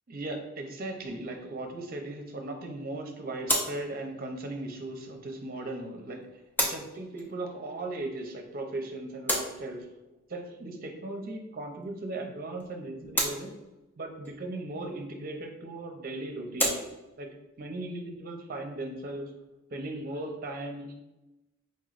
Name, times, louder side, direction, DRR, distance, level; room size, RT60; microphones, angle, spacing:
voice 1, 0.1-9.9 10.3-13.5 14.0-16.8 17.2-19.3 19.7-20.9, right 2 dB, 45° right, 3 dB, 0.6 m, -37 dB
sound 1, 1.0-20.3, equal, 10° left, 0.6 m, -37 dB
4.4 x 2.9 x 2.4 m, 0.99 s
head